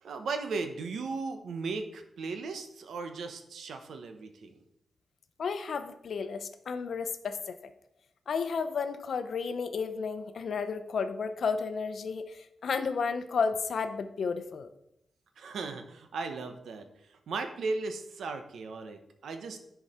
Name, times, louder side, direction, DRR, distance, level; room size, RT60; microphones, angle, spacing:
voice 1, 0.0-4.6 15.4-19.6, right 4 dB, 80° right, 7 dB, 0.9 m, -37 dB
voice 2, 5.4-7.6 8.3-14.7, left 5 dB, 60° left, 10 dB, 0.7 m, -32 dB
10.0 x 4.7 x 4.3 m, 0.80 s
wide cardioid pair, 145°, 0 cm